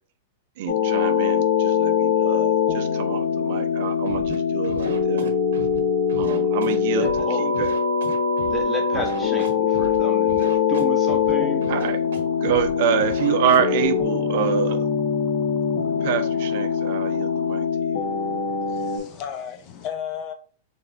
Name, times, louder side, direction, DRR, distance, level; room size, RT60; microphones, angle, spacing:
voice 1, 0.6-5.3 6.2-7.8 11.7-12.0 12.4-14.8 16.0-18.1, right 9 dB, 60° right, 8 dB, 0.5 m, -26 dB
sound 1, 0.7-19.0, left 7 dB, 70° left, 1.2 m, -23 dB
Scratching (performance technique), 4.0-4.4 4.6-5.8 6.1-7.2 7.5-8.6 8.9-10.0 10.3-11.3 11.6-12.2 12.4-12.7 13.0-13.8, right 4 dB, 80° right, 0.9 m, -36 dB
voice 2, 6.9-7.5 8.5-11.7, left 1 dB, 10° left, 0 dB, 1.3 m, -31 dB
sound 2, 12.0-17.7, right 3 dB, 30° right, 1.1 m, -44 dB
voice 3, 18.0-20.3, left 8 dB, 40° left, 7 dB, 0.6 m, -35 dB
4.8 x 3.2 x 2.5 m, 0.41 s
hypercardioid pair, 130°, 0 cm